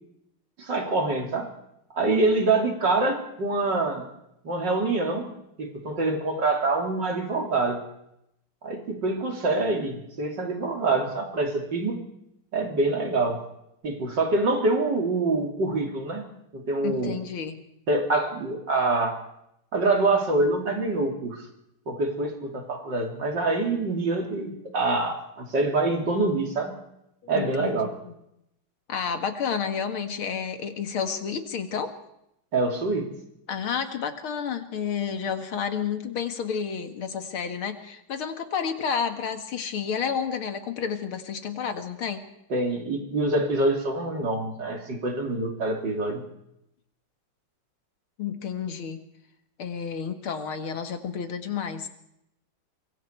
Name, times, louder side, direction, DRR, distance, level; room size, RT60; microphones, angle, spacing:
voice 1, 0.6-1.5 1.9-4.1 4.4-5.3 5.6-7.8 8.6-12.0 12.5-13.4 13.8-17.2 17.9-19.2 19.7-21.5 21.9-26.7 27.3-27.9 32.5-33.1 42.5-46.2, right 2 dB, 55° right, 3 dB, 3.8 m, -25 dB
voice 2, 16.8-17.6 27.2-28.1 28.9-31.9 33.5-42.3 48.2-49.0 49.6-51.9, left 7 dB, 85° left, 7 dB, 2.7 m, -30 dB
24.0 x 23.5 x 4.7 m, 0.79 s
omnidirectional pair, 2.3 m